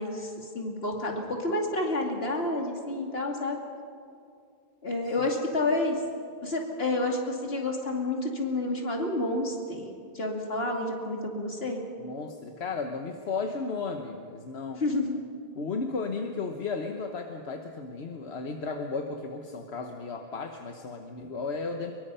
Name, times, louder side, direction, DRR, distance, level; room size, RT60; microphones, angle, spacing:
voice 1, 0.0-3.6 4.8-6.0 6.4-9.9 10.1-11.8 14.8-15.2, left 2 dB, 70° left, 1 dB, 2.8 m, -29 dB
voice 2, 12.0-14.8 15.6-21.9, left 4 dB, 90° left, 4 dB, 1.4 m, -34 dB
23.5 x 22.5 x 5.6 m, 2.4 s
omnidirectional pair, 1.0 m